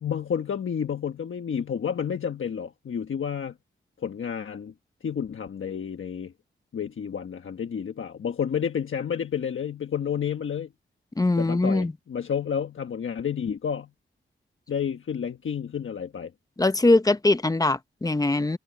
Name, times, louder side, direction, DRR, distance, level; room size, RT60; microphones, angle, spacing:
voice 1, 0.0-3.5 4.0-4.7 5.0-6.3 6.7-10.7 11.4-13.9 14.7-16.3, left 7 dB, 70° left, 1.3 m, -30 dB
voice 2, 11.2-11.9 16.6-18.6, left 2 dB, 15° left, 0.8 m, -22 dB
wide cardioid pair, 140°, 21 cm